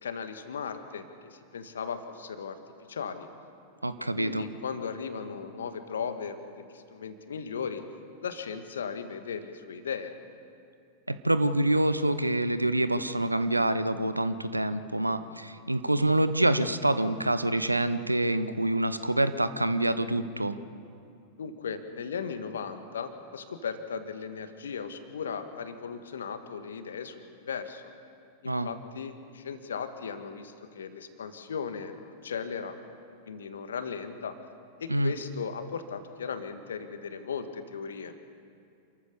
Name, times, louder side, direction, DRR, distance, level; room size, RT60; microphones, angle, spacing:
voice 1, 0.0-2.6 2.9-3.3 4.2-7.8 8.2-10.1 21.4-27.9 28.4-31.9 32.2-32.7 33.2-34.4 34.8-38.2, left 6 dB, 65° left, 9 dB, 1.5 m, -37 dB
voice 2, 3.8-4.5 11.1-20.6 28.4-28.7 34.9-35.1, right 1 dB, 85° right, 12 dB, 0.8 m, -26 dB
28.0 x 14.0 x 6.9 m, 2.5 s
figure-of-eight pair, 90°, 0 cm